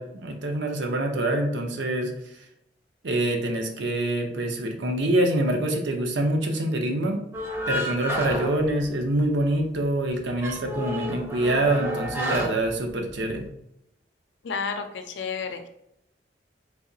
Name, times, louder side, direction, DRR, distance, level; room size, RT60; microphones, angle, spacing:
voice 1, 0.0-2.1 3.0-7.2 7.7-13.5, right 1 dB, 80° right, 3 dB, 0.6 m, -25 dB
sound 1, 7.3-9.4 9.7-9.8 10.2-13.4, equal, 15° right, 0.4 m, -31 dB
voice 2, 14.4-15.7, left 5 dB, 80° left, 6 dB, 0.4 m, -31 dB
3.4 x 2.8 x 2.6 m, 0.78 s
head